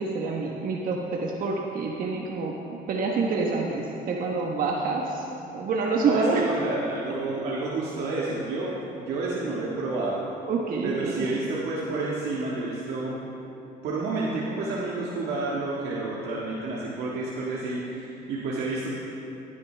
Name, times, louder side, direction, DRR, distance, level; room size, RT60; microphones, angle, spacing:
voice 1, 0.0-5.3 5.5-6.5 10.5-11.4, right 4 dB, 55° right, -1 dB, 1.2 m, -27 dB
voice 2, 6.0-10.2 10.8-13.2 13.8-18.9, right 3 dB, 75° right, -6 dB, 1.7 m, -30 dB
17.0 x 10.5 x 3.4 m, 2.9 s
cardioid pair, 110°, 17 cm